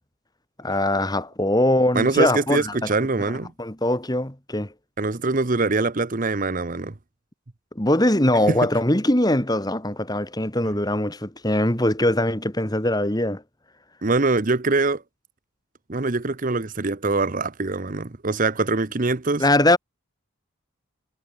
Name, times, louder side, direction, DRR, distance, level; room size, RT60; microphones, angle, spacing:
voice 1, 0.6-2.9 3.2-3.3 3.6-4.7 7.8-13.4 19.4-19.8, left 1 dB, 20° left, 2.1 m, -22 dB
voice 2, 1.9-3.5 5.0-6.9 14.0-15.0 15.9-19.4, right 3 dB, 40° right, 0.8 m, -23 dB
head